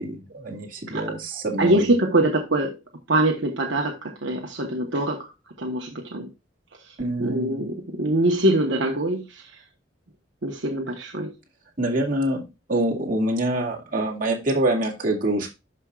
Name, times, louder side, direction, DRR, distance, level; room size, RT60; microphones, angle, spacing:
voice 1, 0.0-1.9 7.0-7.6 11.8-12.4 12.7-15.5, right 1 dB, 45° right, 2.2 m, -25 dB
voice 2, 1.6-2.8 3.1-5.3 5.6-6.3 7.2-9.4 10.4-11.3, right 1 dB, 70° right, 1.2 m, -23 dB
11.5 x 5.4 x 2.4 m
head